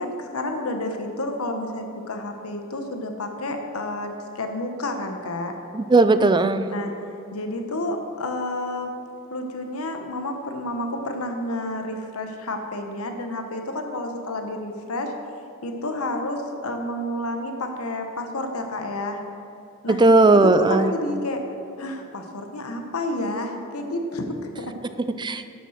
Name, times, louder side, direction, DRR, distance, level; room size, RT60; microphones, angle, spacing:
voice 1, 0.0-5.5 6.7-6.9 7.3-8.9 9.3-15.1 15.6-19.2 19.8-20.0 20.3-21.4 21.8-24.7, left 1 dB, 80° left, 4 dB, 1.0 m, -30 dB
voice 2, 5.7-6.7 19.9-20.9 25.2-25.4, right 2 dB, 20° right, 11 dB, 0.4 m, -17 dB
11.5 x 6.9 x 6.3 m, 2.8 s
head